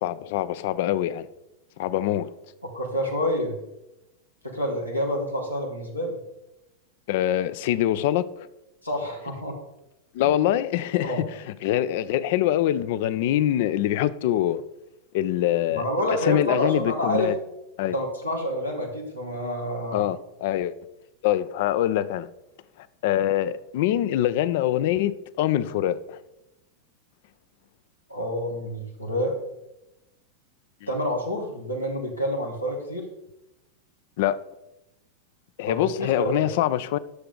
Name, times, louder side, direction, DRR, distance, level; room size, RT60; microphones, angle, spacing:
voice 1, 0.0-1.3 1.8-2.3 7.1-8.3 10.1-14.6 15.1-15.9 16.2-17.4 17.8-17.9 19.9-20.7 21.2-22.3 22.8-26.2 34.2-34.4 35.6-37.0, left 12 dB, 50° left, 0.4 m, -24 dB
voice 2, 2.6-3.6 4.4-6.2 8.8-9.5 10.2-10.4 11.0-11.2 15.8-17.3 17.9-20.1 28.1-29.3 30.9-33.0 35.6-36.3, equal, 85° left, 1.9 m, -28 dB
10.5 x 6.7 x 3.8 m
figure-of-eight pair, 90°, 0 cm